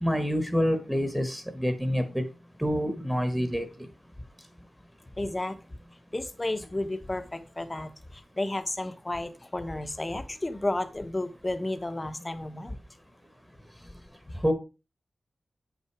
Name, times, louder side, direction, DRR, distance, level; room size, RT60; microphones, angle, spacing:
voice 1, 0.0-2.2 2.6-3.6 14.4-14.5, equal, ahead, 7 dB, 1.4 m, -27 dB
voice 2, 5.2-5.6 6.1-12.8 14.3-14.4, left 2 dB, 20° left, 9 dB, 1.1 m, -32 dB
8.7 x 5.9 x 4.8 m, 0.31 s
wide cardioid pair, 105°, 0 cm